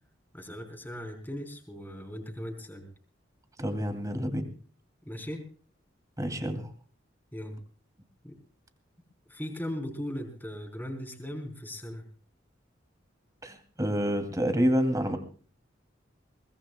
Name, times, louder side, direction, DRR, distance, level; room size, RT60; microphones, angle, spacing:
voice 1, 0.3-2.9 5.0-5.4 7.3-7.6 8.2-8.4 9.3-12.0, equal, 10° left, 3 dB, 3.8 m, -38 dB
voice 2, 3.6-4.5 6.2-6.7 13.4-15.2, equal, 20° right, 7 dB, 2.6 m, -28 dB
23.0 x 19.5 x 2.3 m, 0.40 s
head